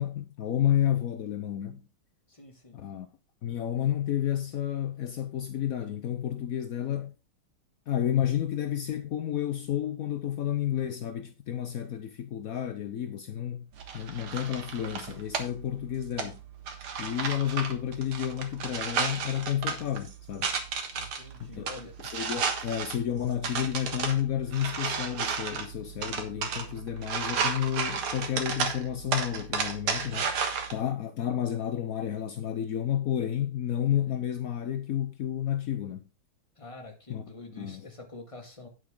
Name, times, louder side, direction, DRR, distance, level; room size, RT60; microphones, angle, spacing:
voice 1, 0.0-1.9 2.7-3.1 3.4-7.1 7.9-13.7 13.9-16.4 17.0-20.5 21.4-21.6 22.0-30.3 30.7-36.0 37.1-37.2 37.6-37.9, left 10 dB, 65° left, 0.8 m, -31 dB
voice 2, 2.3-2.8 20.9-21.9 36.6-38.7, left 3 dB, 15° left, 2.1 m, -46 dB
sound 1, 13.8-30.7, right 6 dB, 80° right, 2.4 m, -33 dB
9.3 x 8.5 x 3.7 m
omnidirectional pair, 2.4 m